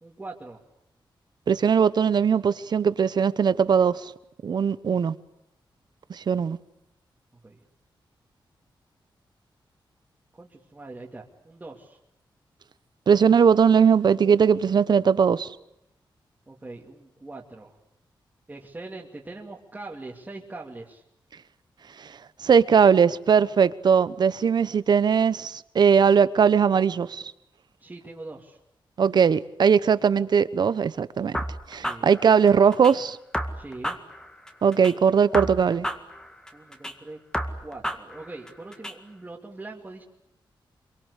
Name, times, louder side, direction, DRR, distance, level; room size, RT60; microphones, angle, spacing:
voice 1, 0.0-0.6 7.4-7.6 10.4-12.0 16.5-17.7 18.5-21.0 27.8-28.6 31.7-32.1 33.5-34.0 36.5-37.2 37.6-40.0, right 2 dB, 20° right, 2.5 m, -42 dB
voice 2, 1.5-4.1 4.4-5.1 6.1-6.6 13.1-15.5 22.0-22.1 22.4-27.2 29.0-31.4 31.7-33.2 34.6-35.9, right 6 dB, 55° right, 1.0 m, -20 dB
sound 1, 31.3-32.9 33.3-34.9 35.3-36.9 37.3-38.9, equal, 10° left, 2.0 m, -32 dB
26.5 x 23.5 x 8.3 m
wide cardioid pair, 145°, 9 cm